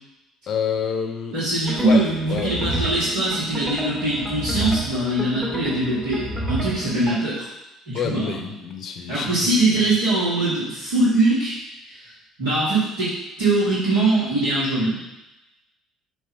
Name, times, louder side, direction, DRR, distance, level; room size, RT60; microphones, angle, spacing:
voice 1, 0.5-1.3 1.8-2.0 2.3-2.6 7.9-9.6, left 7 dB, 45° left, 5 dB, 0.8 m, -27 dB
voice 2, 1.3-7.5 7.9-8.4 9.1-11.6 11.9-12.1 12.4-13.1 13.4-15.0, right 2 dB, 70° right, -11 dB, 2.3 m, -22 dB
sound 1, 1.6-7.2, right 1 dB, 25° right, 1.6 m, -30 dB
6.7 x 3.1 x 5.5 m, 0.94 s
figure-of-eight pair, 55°, 0 cm